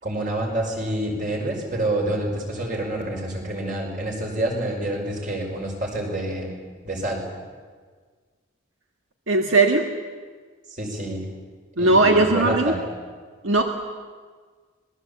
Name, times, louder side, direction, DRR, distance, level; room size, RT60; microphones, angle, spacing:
voice 1, 0.0-6.5 6.8-7.2 10.7-11.3 11.8-12.8, right 1 dB, 40° right, 1 dB, 5.2 m, -27 dB
voice 2, 9.3-9.9 11.8-12.7 13.4-13.6, right 2 dB, 75° right, 4 dB, 1.6 m, -18 dB
25.5 x 19.5 x 8.5 m, 1.5 s
head